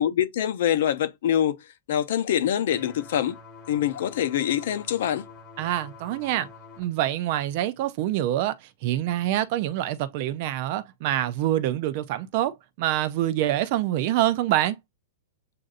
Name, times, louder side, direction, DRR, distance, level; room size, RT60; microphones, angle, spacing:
voice 1, 0.0-1.6 1.9-3.4 3.7-5.2, left 10 dB, 55° left, 0.7 m, -24 dB
sound 1, 2.7-6.8, left 4 dB, 20° left, 1.1 m, -46 dB
voice 2, 5.6-6.5 6.8-8.6 8.8-14.8, right 13 dB, 35° right, 0.4 m, -26 dB
7.5 x 2.6 x 2.4 m
supercardioid pair, 180°, 0 cm